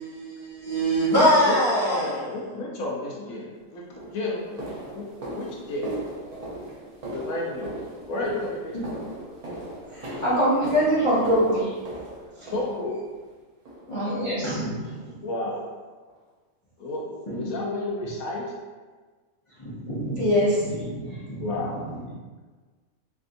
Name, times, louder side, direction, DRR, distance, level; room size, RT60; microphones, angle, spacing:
voice 1, 0.0-2.2, equal, 35° right, -10 dB, 1.1 m, -22 dB
voice 2, 1.1-1.6 1.9-5.1 5.3-5.9 7.1-7.7 8.1-9.0 12.5-13.0 15.2-15.6 16.8-18.4 21.4-21.8, left 2 dB, 75° left, -3 dB, 1.0 m, -32 dB
sound 1, 3.3-3.4 4.0-13.2 13.7-14.0 14.3-14.5 14.9-15.1 15.5-15.6 16.1-16.2, right 1 dB, 55° right, 0.4 m, -39 dB
voice 3, 9.9-11.8 12.4-12.5 13.9-15.2 17.3-17.4 19.6-21.5 21.8-22.0, equal, 30° left, -12 dB, 0.6 m, -25 dB
3.3 x 2.6 x 2.5 m, 1.4 s
omnidirectional pair, 1.5 m